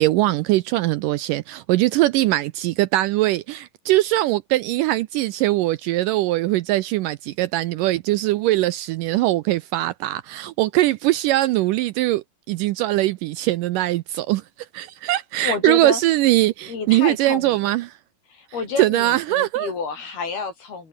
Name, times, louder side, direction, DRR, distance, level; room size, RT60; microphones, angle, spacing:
voice 1, 0.0-14.4 14.7-18.0 18.8-19.7, right 16 dB, 80° right, 2.0 m, -21 dB
voice 2, 15.4-16.0 16.7-17.7 18.3-20.9, left 5 dB, 85° left, 8.4 m, -29 dB
omnidirectional pair, 4.3 m